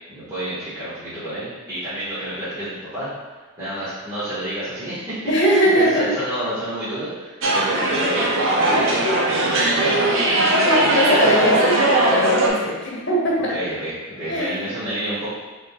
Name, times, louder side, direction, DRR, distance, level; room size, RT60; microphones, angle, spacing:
voice 1, 0.1-3.1 3.6-5.2 5.7-10.2 10.7-11.5 13.5-15.3, right 1 dB, 15° right, -15 dB, 1.3 m, -30 dB
voice 2, 5.3-6.1 10.6-13.5 14.3-14.6, equal, 55° left, -4 dB, 1.0 m, -20 dB
sound 1, 7.4-12.5, right 1 dB, 60° right, 0.7 m, -19 dB
5.2 x 3.5 x 2.3 m, 1.3 s
head